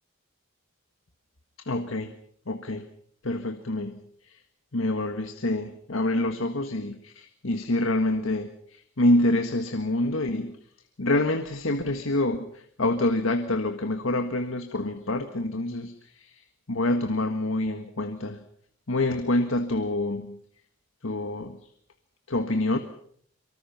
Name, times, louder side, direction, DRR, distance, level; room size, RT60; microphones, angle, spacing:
voice 1, 1.7-2.1 2.5-2.9 3.2-3.9 4.2-4.4 4.7-10.5 11.0-18.4 18.9-20.4 21.0-21.6 22.3-22.8, left 1 dB, 80° left, 7 dB, 1.7 m, -27 dB
24.5 x 24.0 x 5.8 m, 0.64 s
head